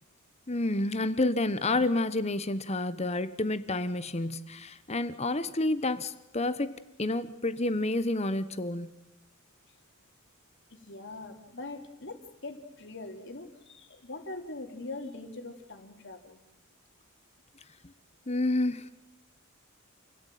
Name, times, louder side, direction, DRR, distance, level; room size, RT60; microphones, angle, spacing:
voice 1, 0.5-8.9 17.8-17.9 18.3-18.9, left 2 dB, 30° left, 13 dB, 1.1 m, -29 dB
voice 2, 10.7-16.4, left 2 dB, 55° left, 4 dB, 3.5 m, -42 dB
28.5 x 17.5 x 9.3 m, 0.90 s
head